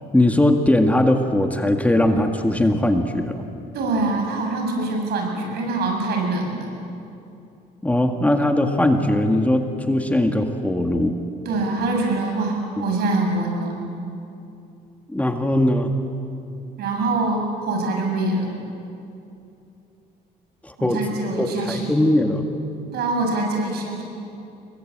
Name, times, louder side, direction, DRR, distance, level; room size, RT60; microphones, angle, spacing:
voice 1, 0.1-3.4 7.8-11.2 15.1-15.9 20.6-21.0 21.4-22.5, left 1 dB, 10° left, 5 dB, 1.8 m, -20 dB
voice 2, 3.7-6.7 11.4-13.8 16.8-18.5 20.8-22.0 22.9-24.0, right 2 dB, 70° right, 2 dB, 7.8 m, -24 dB
29.0 x 23.0 x 8.8 m, 2.7 s
cardioid pair, 110°, 17 cm